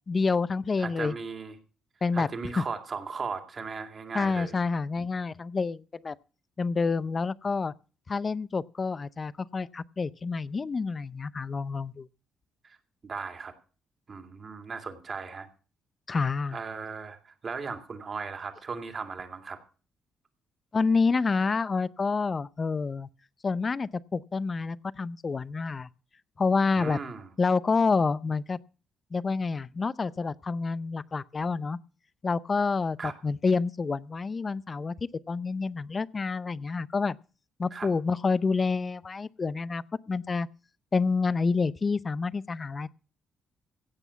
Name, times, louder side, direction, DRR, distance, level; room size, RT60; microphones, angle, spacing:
voice 1, 0.1-1.1 2.0-2.3 2.6-2.7 4.1-6.2 6.6-7.7 8.1-12.1 16.1-16.6 20.7-23.1 23.4-25.9 26.4-27.0 27.4-28.6 29.1-31.8 32.2-34.9 35.3-37.2 37.6-40.5 40.9-42.9, left 4 dB, 35° left, 0.6 m, -28 dB
voice 2, 0.8-1.5 2.1-4.6 12.6-12.8 13.0-13.5 14.1-15.5 16.5-19.6 26.8-27.3 33.0-33.1 37.7-37.9, right 5 dB, 40° right, 2.3 m, -37 dB
16.5 x 6.1 x 6.9 m
cardioid pair, 90°, 0 cm